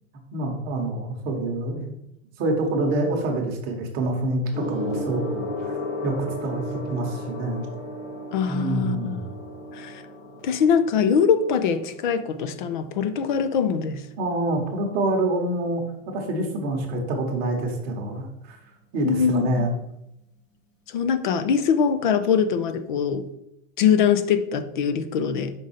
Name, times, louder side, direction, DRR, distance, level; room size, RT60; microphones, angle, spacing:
voice 1, 0.3-2.0 2.4-5.8 6.0-6.1 6.4-7.7 8.5-9.3 14.2-18.6 18.9-19.7, right 2 dB, 25° right, 1 dB, 1.0 m, -26 dB
Gong, 4.5-14.3 15.2-15.5, equal, 85° left, 2.5 m, -35 dB
voice 2, 8.3-9.2 9.7-10.0 10.4-14.0 19.1-19.7 20.9-23.2 23.8-25.5, left 7 dB, 40° left, 11 dB, 0.5 m, -22 dB
5.4 x 3.7 x 5.6 m, 0.82 s
supercardioid pair, 175°, 38 cm